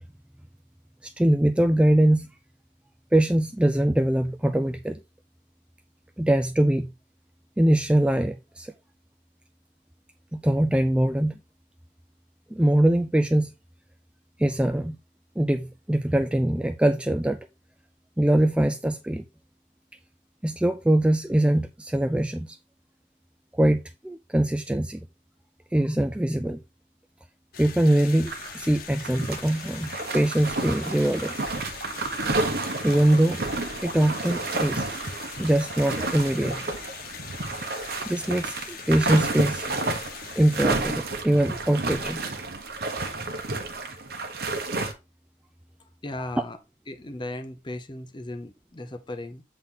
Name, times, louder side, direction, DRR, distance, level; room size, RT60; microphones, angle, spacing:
voice 1, 1.0-2.3 3.1-5.0 6.2-6.9 7.6-8.7 10.3-11.4 12.5-13.5 14.4-15.0 15.4-17.4 18.2-19.2 20.4-22.6 23.5-25.0 25.7-26.6 27.6-31.3 32.8-33.4 33.8-34.9 35.4-36.6 38.0-39.7 40.4-42.3, right 1 dB, 5° right, 0.3 m, -22 dB
sound 1, 27.5-40.6, left 6 dB, 55° left, 1.1 m, -42 dB
sound 2, 28.3-28.7 28.9-44.9, right 3 dB, 60° right, 1.1 m, -31 dB
voice 2, 46.0-46.6 46.9-49.4, left 1 dB, 25° left, 0.7 m, -36 dB
7.3 x 4.1 x 3.8 m
head